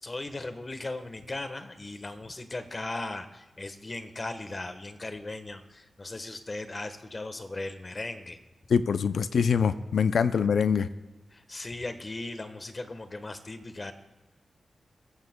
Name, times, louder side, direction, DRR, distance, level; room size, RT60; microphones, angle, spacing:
voice 1, 0.0-8.4 11.3-13.9, left 2 dB, 40° left, 9 dB, 1.2 m, -37 dB
voice 2, 8.7-10.9, left 6 dB, 80° left, 12 dB, 0.4 m, -24 dB
20.5 x 15.5 x 2.2 m, 1.1 s
cardioid pair, 55°, 0 cm